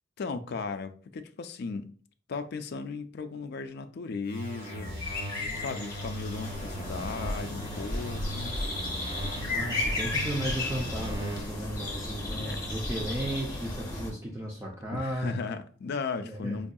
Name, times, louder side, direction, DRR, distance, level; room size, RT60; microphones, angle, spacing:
voice 1, 0.2-1.9 2.3-5.0 5.6-8.6 12.3-12.6 14.9-16.7, left 4 dB, 55° left, 0.4 m, -36 dB
sound 1, 4.2-11.6, equal, 40° right, 1.6 m, -39 dB
sound 2, 4.6-14.1, left 2 dB, 20° left, 1.3 m, -34 dB
voice 2, 9.4-15.4 16.2-16.7, right 1 dB, 15° right, 0.5 m, -35 dB
4.7 x 2.6 x 2.2 m
head